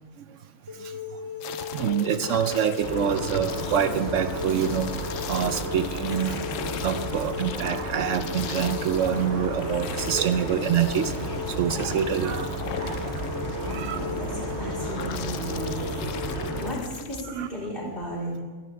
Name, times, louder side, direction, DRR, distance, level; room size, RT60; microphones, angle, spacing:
sound 1, 0.7-16.6, left 4 dB, 20° right, 1.8 m, -37 dB
voice 1, 0.7-1.2 1.6-6.4 6.8-14.0 16.4-16.5 17.3-17.5, right 8 dB, 70° right, 11 dB, 0.9 m, -27 dB
sound 2, 1.4-17.2, left 10 dB, 75° left, 1.0 m, -40 dB
sound 3, 2.8-16.7, right 1 dB, 50° right, 2.1 m, -33 dB
voice 2, 13.5-16.0 16.6-18.4, equal, 40° left, -4 dB, 4.4 m, -35 dB
24.0 x 11.0 x 3.4 m, 1.3 s
omnidirectional pair, 1.4 m